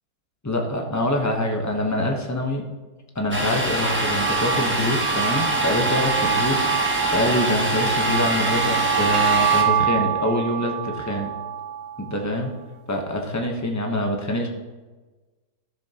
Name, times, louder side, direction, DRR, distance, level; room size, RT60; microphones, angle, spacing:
voice 1, 0.4-2.6 3.1-6.7 7.1-11.3 12.0-12.5 12.9-14.5, left 1 dB, 20° left, 2 dB, 0.4 m, -25 dB
Domestic sounds home sounds, 3.3-9.6, equal, 10° right, 1.0 m, -25 dB
sound 1, 3.6-12.2, right 9 dB, 85° right, 1.3 m, -25 dB
13.5 x 7.2 x 2.9 m, 1.3 s
omnidirectional pair, 2.0 m